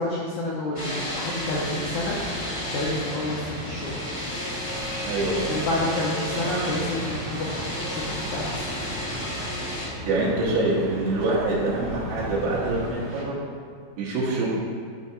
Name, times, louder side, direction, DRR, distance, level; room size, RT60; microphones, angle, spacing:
voice 1, 0.0-2.2 2.7-4.0 5.5-7.5 7.9-8.7, left 1 dB, 80° left, -4 dB, 1.7 m, -29 dB
sound 1, 0.7-9.9, equal, 45° left, 0.9 m, -32 dB
sound 2, 1.4-13.2, left 1 dB, 45° right, 0.8 m, -40 dB
sound 3, 4.7-12.9, right 1 dB, 70° right, 2.6 m, -40 dB
voice 2, 5.0-5.6 10.1-13.4 14.0-14.5, right 2 dB, 85° right, -8 dB, 3.4 m, -25 dB
11.5 x 4.8 x 4.3 m, 2.1 s
omnidirectional pair, 4.7 m